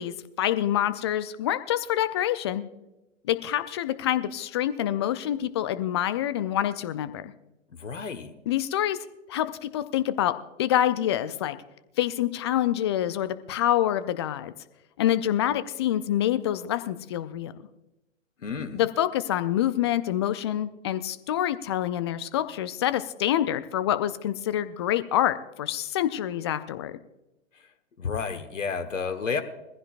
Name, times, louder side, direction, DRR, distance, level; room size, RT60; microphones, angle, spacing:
voice 1, 0.0-2.6 3.3-7.3 8.5-9.0 9.3-10.3 10.6-11.6 12.0-14.5 15.0-17.5 18.7-27.0, left 12 dB, 20° left, 14 dB, 0.4 m, -26 dB
voice 2, 7.8-8.3 18.4-18.8 28.0-29.4, left 5 dB, 75° left, 7 dB, 1.3 m, -31 dB
21.0 x 15.0 x 2.5 m, 0.96 s
figure-of-eight pair, 115°, 38 cm